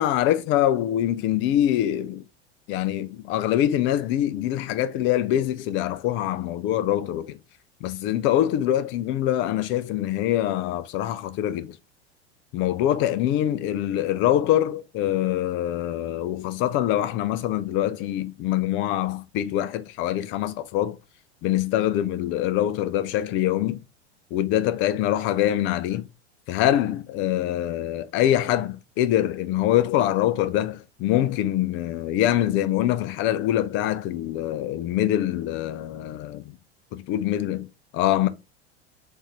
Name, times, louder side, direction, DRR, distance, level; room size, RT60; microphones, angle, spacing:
voice 1, 0.0-2.2 2.7-7.4 7.8-11.8 12.5-21.0 21.4-23.8 24.3-26.0 26.5-36.5 36.9-37.7 37.9-38.3, left 12 dB, 35° left, 0.4 m, -24 dB
3.7 x 2.5 x 2.8 m
hypercardioid pair, 85°, 34 cm